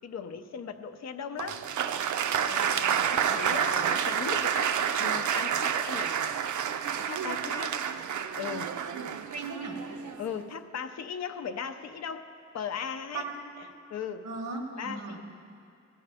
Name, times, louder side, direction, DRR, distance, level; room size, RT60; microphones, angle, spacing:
voice 1, 0.0-1.6 2.3-4.7 5.0-6.1 7.0-7.7 8.4-8.7 10.2-13.2 13.6-14.3 14.8-15.2, left 7 dB, 65° left, 7 dB, 0.5 m, -38 dB
Applause, 1.4-10.3, right 8 dB, 80° right, 0.5 m, -29 dB
voice 2, 7.2-7.7 9.3-9.9 13.1-13.3 14.2-15.2, right 3 dB, 60° right, 0 dB, 1.7 m, -37 dB
17.0 x 10.5 x 3.4 m, 2.4 s
wide cardioid pair, 180°, 29 cm